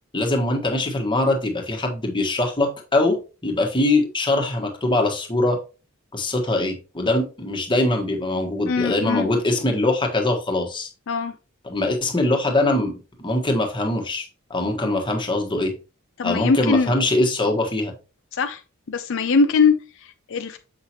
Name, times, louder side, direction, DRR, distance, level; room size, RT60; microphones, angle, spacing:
voice 1, 0.1-5.6 6.1-10.9 11.6-14.2 14.5-15.7 16.2-17.9, left 2 dB, 25° left, 1.3 m, -22 dB
voice 2, 8.6-9.3 11.1-11.3 16.2-17.0 18.3-18.6 18.9-20.6, left 4 dB, 65° left, 0.5 m, -21 dB
7.2 x 5.7 x 3.0 m
head